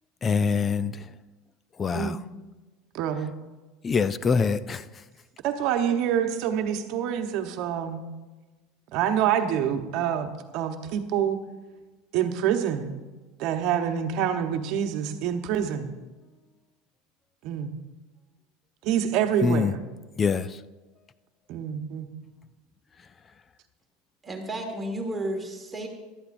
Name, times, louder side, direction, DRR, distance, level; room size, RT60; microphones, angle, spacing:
voice 1, 0.2-1.1 1.8-2.2 3.8-4.9 19.4-19.7 20.2-20.6, left 5 dB, 25° left, 0.4 m, -24 dB
voice 2, 2.9-3.3 5.4-8.0 8.9-11.4 12.1-12.9 13.4-15.9 17.4-17.7 18.8-19.8 21.5-22.1, right 9 dB, 60° right, 1.1 m, -26 dB
voice 3, 24.2-25.9, right 1 dB, 15° right, 1.8 m, -32 dB
16.0 x 12.0 x 2.6 m
supercardioid pair, 120°, 0 cm